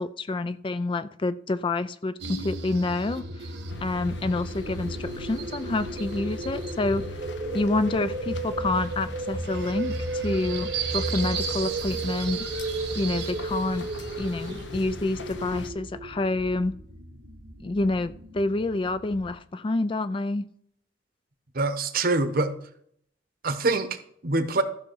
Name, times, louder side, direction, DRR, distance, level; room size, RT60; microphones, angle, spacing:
voice 1, 0.0-3.2 3.8-7.1 7.5-12.4 13.0-13.9 14.2-16.8 17.6-20.5, left 2 dB, 30° left, 13 dB, 0.4 m, -28 dB
sound 1, 2.2-19.3, right 3 dB, 70° right, 1.5 m, -33 dB
sound 2, 3.7-15.7, left 2 dB, 80° left, 0.9 m, -42 dB
voice 2, 21.5-22.5 23.4-24.6, right 3 dB, 55° right, 10 dB, 1.0 m, -25 dB
15.0 x 5.9 x 4.6 m, 0.68 s
head